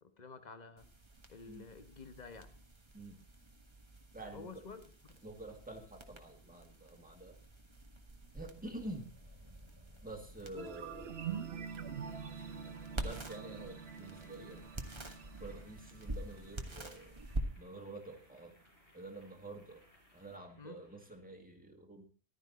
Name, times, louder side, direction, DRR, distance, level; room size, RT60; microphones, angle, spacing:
voice 1, 0.0-0.9 1.3-2.5 4.3-5.2 10.5-10.7 11.3-11.5 20.6-20.8, left 4 dB, 40° left, 9 dB, 1.3 m, -51 dB
sound 1, 0.8-20.4, right 1 dB, 25° right, 1.4 m, -48 dB
voice 2, 4.1-4.6 5.2-7.4 8.3-9.1 10.0-11.5 12.7-14.7 15.4-17.2 17.6-18.5 18.9-19.8 20.1-22.0, right 2 dB, 10° right, 2 dB, 2.0 m, -48 dB
sound 2, 10.6-17.6, right 7 dB, 65° right, 1.2 m, -46 dB
Boiling, 11.8-21.3, left 1 dB, 85° left, 5.2 m, -65 dB
14.5 x 12.0 x 4.1 m, 0.39 s
omnidirectional pair, 1.1 m